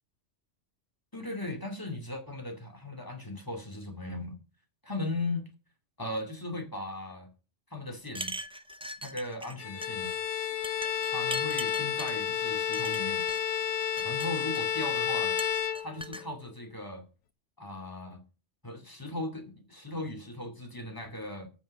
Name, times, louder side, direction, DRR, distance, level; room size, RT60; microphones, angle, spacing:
voice 1, 1.1-4.4 4.8-5.4 6.0-7.3 7.7-8.4 9.0-10.1 11.1-13.2 14.0-15.4 15.8-17.0 17.6-18.2 18.6-21.5, left 2 dB, 15° left, 2.4 m, -37 dB
sound 1, 8.1-9.6 9.8-10.2 10.6-12.1 12.7-13.4 13.8-14.8 15.4-16.2, right 1 dB, 5° right, 0.4 m, -40 dB
Bowed string instrument, 9.6-16.4, left 9 dB, 75° left, 1.1 m, -31 dB
9.1 x 7.3 x 6.4 m
omnidirectional pair, 1.3 m